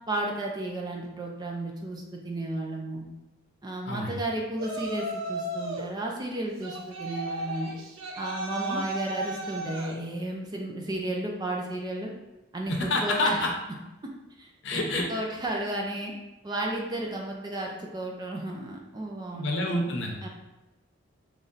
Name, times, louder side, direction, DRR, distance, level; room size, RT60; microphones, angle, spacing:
voice 1, 0.1-3.1 3.6-7.7 8.2-12.1 12.5-13.4 14.4-14.8 15.1-16.1 16.4-19.5 20.2-20.3, right 1 dB, 20° right, 0 dB, 0.4 m, -33 dB
voice 2, 3.8-4.2 8.7-8.8 12.7-13.5 14.6-15.0 19.3-20.1, left 2 dB, 60° left, 1 dB, 0.7 m, -28 dB
Yell, 4.6-5.9 6.6-10.0, right 1 dB, 85° right, 0.6 m, -35 dB
3.1 x 2.6 x 3.8 m, 1.0 s
head